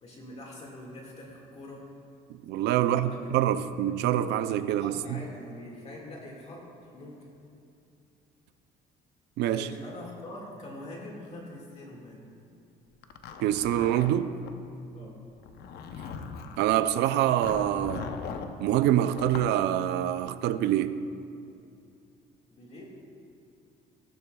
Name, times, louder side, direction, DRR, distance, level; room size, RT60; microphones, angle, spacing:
voice 1, 0.0-1.9 2.8-3.5 4.6-7.3 9.5-12.3 14.9-15.2 22.5-22.9, left 1 dB, 40° left, 2.0 m, -44 dB
voice 2, 2.4-5.2 9.4-9.7 13.4-14.4 16.6-18.1 18.6-21.1, right 11 dB, 80° right, 0.5 m, -25 dB
Zipper (clothing), 13.0-14.5 15.4-16.6 17.4-18.5 19.1-19.5, left 6 dB, 70° left, 0.8 m, -39 dB
16.0 x 12.0 x 2.3 m
cardioid pair, 110°, 17 cm